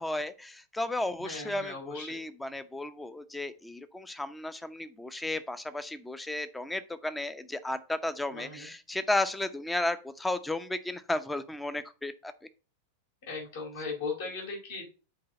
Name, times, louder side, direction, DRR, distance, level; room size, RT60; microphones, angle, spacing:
voice 1, 0.0-12.3, left 1 dB, 5° left, 13 dB, 0.7 m, -34 dB
voice 2, 1.2-2.2 8.3-8.7 13.3-14.9, left 4 dB, 55° left, -2 dB, 4.3 m, -38 dB
7.7 x 4.6 x 4.2 m, 0.34 s
figure-of-eight pair, 90°, 0 cm